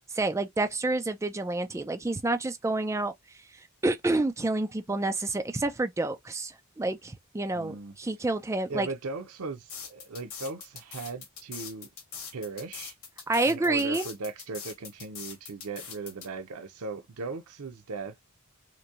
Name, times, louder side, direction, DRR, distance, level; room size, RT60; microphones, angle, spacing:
voice 1, 0.1-3.1 3.8-8.9 13.3-14.1, right 2 dB, 15° right, 0.3 m, -28 dB
voice 2, 7.5-8.0 8.7-11.9 12.3-12.9 13.5-18.2, right 3 dB, 85° right, 0.6 m, -38 dB
sound 1, 9.7-16.3, left 6 dB, 70° left, 1.0 m, -42 dB
3.0 x 2.6 x 2.4 m
head